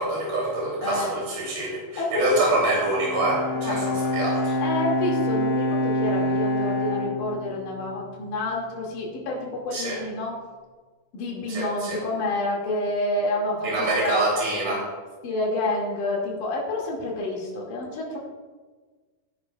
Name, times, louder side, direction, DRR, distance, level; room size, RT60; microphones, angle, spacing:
voice 1, 0.0-4.5 9.7-10.0 11.5-12.0 13.6-14.8, right 2 dB, 90° right, -4 dB, 5.0 m, -26 dB
voice 2, 0.8-1.1 2.0-2.4 3.5-3.9 4.6-10.3 11.1-14.2 14.6-14.8 15.2-18.2, left 2 dB, 65° left, -3 dB, 3.8 m, -28 dB
Bowed string instrument, 2.8-8.2, left 1 dB, 85° left, 5.2 m, -26 dB
17.5 x 10.5 x 2.4 m, 1.4 s
omnidirectional pair, 4.0 m